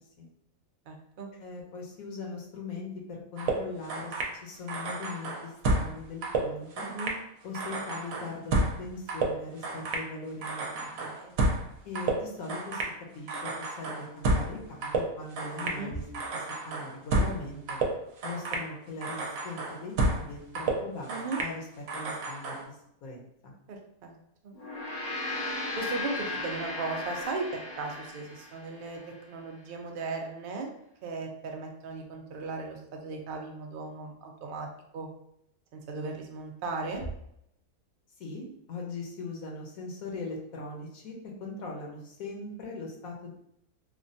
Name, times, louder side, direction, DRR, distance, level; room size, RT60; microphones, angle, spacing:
voice 1, 0.9-1.3 6.8-7.2 11.1-11.3 15.6-16.0 21.1-21.4 23.7-24.1 24.4-24.5 25.8-29.0 29.3-30.7 31.0-34.7 34.9-35.1 35.7-37.1, right 3 dB, 85° right, 2 dB, 0.4 m, -37 dB
voice 2, 1.4-4.1 4.4-6.9 7.4-11.1 11.8-16.1 16.3-17.8 18.2-22.8 23.0-23.5 38.2-41.1 41.4-43.3, left 3 dB, 75° left, -1 dB, 1.1 m, -40 dB
sound 1, 3.4-4.4 4.7-6.0 6.2-7.2 7.5-10.1 10.4-11.7 11.9-13.0 13.3-14.6 14.8-15.8 16.1-17.4 17.7-18.7 19.0-20.3 20.5-21.6 21.9-22.6, right 2 dB, 70° right, 1.0 m, -31 dB
Gong, 24.5-29.1, left 2 dB, 40° left, 0.6 m, -36 dB
3.2 x 2.2 x 2.6 m, 0.75 s
omnidirectional pair, 1.6 m